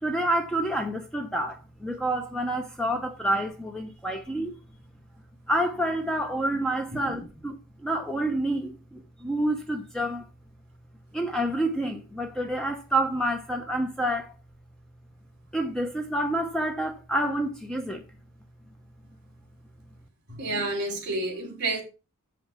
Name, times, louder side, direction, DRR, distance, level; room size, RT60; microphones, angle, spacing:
voice 1, 0.0-4.6 5.5-10.3 11.1-14.3 15.5-18.0, right 1 dB, 5° left, 0.7 m, -28 dB
voice 2, 6.9-7.2 20.3-21.8, right 2 dB, 50° right, 3.3 m, -30 dB
7.7 x 5.8 x 5.6 m
head